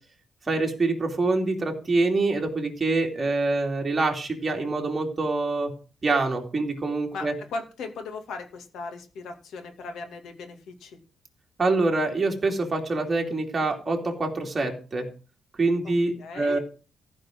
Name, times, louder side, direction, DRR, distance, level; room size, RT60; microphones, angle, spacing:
voice 1, 0.5-5.7 6.0-7.3 11.6-15.1 15.6-16.6, right 3 dB, 25° right, 1 dB, 2.9 m, -25 dB
voice 2, 7.1-11.0 15.8-15.9 16.2-16.6, left 3 dB, 85° left, 6 dB, 2.6 m, -37 dB
14.5 x 5.2 x 7.6 m, 0.35 s
cardioid pair, 140°, 0 cm